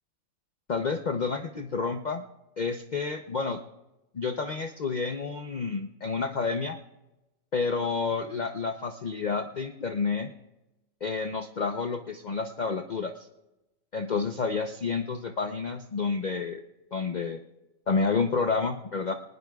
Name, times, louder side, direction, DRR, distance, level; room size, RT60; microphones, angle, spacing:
voice 1, 0.7-2.2 2.6-3.6 4.1-6.8 7.5-10.3 11.0-13.1 13.9-16.6 16.9-17.4 17.9-19.1, left 4 dB, 45° left, 6 dB, 0.7 m, -29 dB
24.0 x 19.5 x 2.3 m, 1.0 s
omnidirectional pair, 1.4 m